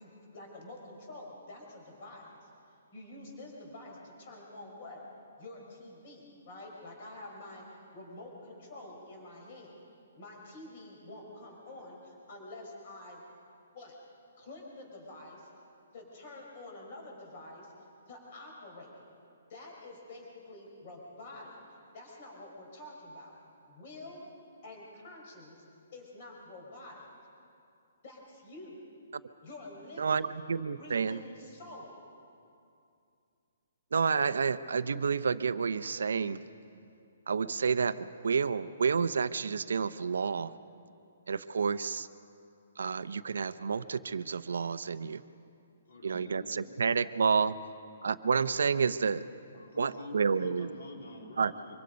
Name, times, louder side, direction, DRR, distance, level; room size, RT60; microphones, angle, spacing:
voice 1, 0.0-2.5 2.9-5.0 5.4-9.8 10.1-13.2 13.7-14.0 14.4-15.5 15.9-17.7 18.1-19.0 19.5-21.6 21.9-23.3 23.7-24.3 24.6-25.6 25.9-27.1 28.0-28.8 29.4-30.3 30.8-32.1, left 2 dB, 30° left, 0 dB, 5.0 m, -48 dB
voice 2, 30.0-31.2 33.9-36.4 37.3-40.5 41.3-42.1 42.8-45.2 46.0-47.5 48.0-49.2 49.8-50.7 51.4-51.5, right 5 dB, 85° right, 13 dB, 0.7 m, -29 dB
voice 3, 45.8-46.9 49.5-51.8, left 2 dB, 70° left, 0 dB, 3.9 m, -47 dB
25.0 x 23.0 x 5.3 m, 2.6 s
hypercardioid pair, 180°, 0 cm